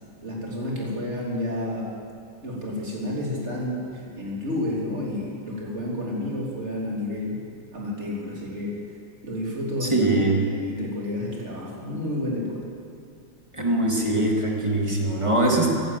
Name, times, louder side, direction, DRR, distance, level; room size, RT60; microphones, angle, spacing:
voice 1, 0.2-1.9 2.4-7.4 7.7-8.8 9.2-12.6, left 1 dB, 30° right, -4 dB, 3.4 m, -30 dB
voice 2, 9.8-10.4 13.5-15.7, right 1 dB, 15° right, -1 dB, 1.8 m, -22 dB
16.0 x 11.5 x 7.7 m, 2.3 s
omnidirectional pair, 2.3 m